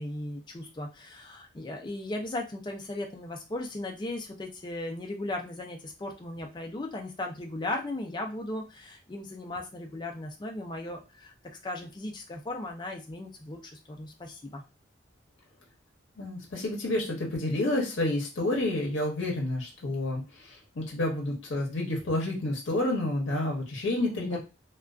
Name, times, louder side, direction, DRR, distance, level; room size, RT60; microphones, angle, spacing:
voice 1, 0.0-11.3 11.6-14.6 24.2-24.4, left 1 dB, 25° left, 2 dB, 0.4 m, -37 dB
voice 2, 16.2-24.4, left 1 dB, 75° left, 0 dB, 0.7 m, -29 dB
2.4 x 2.2 x 2.3 m, 0.29 s
head